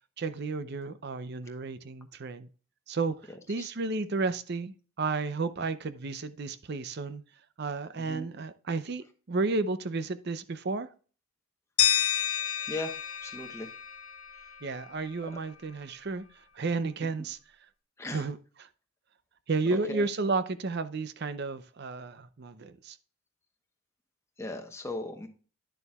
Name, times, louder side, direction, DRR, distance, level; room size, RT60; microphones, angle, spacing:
voice 1, 0.2-2.5 2.9-7.2 7.6-10.9 14.6-17.4 18.1-18.7 19.5-23.0, right 3 dB, 50° right, 0.5 m, -32 dB
sound 1, 11.8-14.7, left 9 dB, 80° left, 1.2 m, -29 dB
voice 2, 12.7-13.7 15.2-15.3 18.0-18.2 19.9-20.0 24.4-25.3, left 2 dB, 15° left, 0.9 m, -38 dB
10.0 x 6.9 x 2.3 m
head